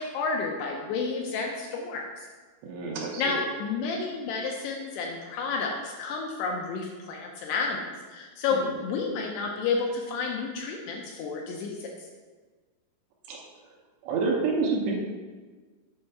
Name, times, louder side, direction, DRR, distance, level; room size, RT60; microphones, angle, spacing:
voice 1, 0.0-2.3 3.2-11.9, left 4 dB, 85° left, 0 dB, 2.4 m, -31 dB
voice 2, 2.6-3.4 13.3-13.4 14.0-14.9, right 4 dB, 75° right, -2 dB, 2.8 m, -28 dB
8.0 x 4.3 x 5.7 m, 1.4 s
omnidirectional pair, 5.5 m